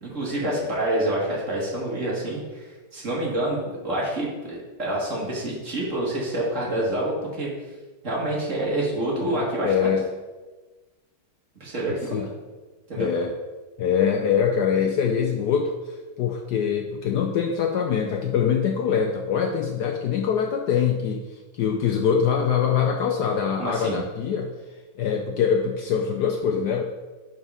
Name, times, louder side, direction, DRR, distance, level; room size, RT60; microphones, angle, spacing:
voice 1, 0.0-7.5 8.0-9.9 11.6-12.1 12.9-13.1 23.6-24.0, right 1 dB, 40° right, -4 dB, 1.8 m, -27 dB
voice 2, 9.2-10.1 11.9-12.3 13.0-13.3 13.8-21.3 21.5-24.5 25.0-26.8, left 7 dB, 75° left, 3 dB, 0.9 m, -24 dB
5.3 x 5.3 x 5.4 m, 1.3 s
omnidirectional pair, 2.2 m